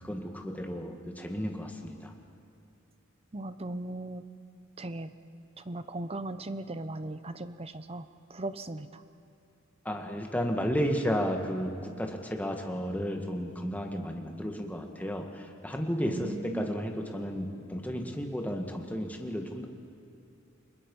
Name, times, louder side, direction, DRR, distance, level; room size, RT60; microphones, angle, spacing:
voice 1, 0.0-2.1 9.8-19.7, equal, 10° left, 3 dB, 1.8 m, -33 dB
voice 2, 3.3-4.2 4.8-5.1 5.7-9.0 16.0-16.7, right 2 dB, 30° right, 12 dB, 0.8 m, -38 dB
30.0 x 21.0 x 5.5 m, 2.7 s
head